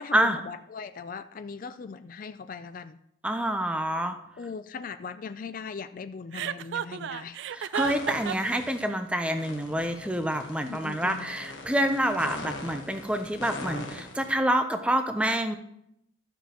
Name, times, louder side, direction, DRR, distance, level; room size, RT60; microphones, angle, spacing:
voice 1, 0.0-3.0 4.4-7.4 10.7-11.3, left 5 dB, 45° left, 11 dB, 0.3 m, -39 dB
voice 2, 3.2-4.2 7.5-15.6, right 1 dB, 5° right, 7 dB, 0.6 m, -27 dB
Chuckle chortle, 6.3-8.6, right 9 dB, 65° right, 0.3 m, -32 dB
sound 1, 7.7-8.9 9.3-14.3, left 2 dB, 70° left, 1.4 m, -41 dB
13.5 x 7.0 x 3.0 m, 0.77 s
head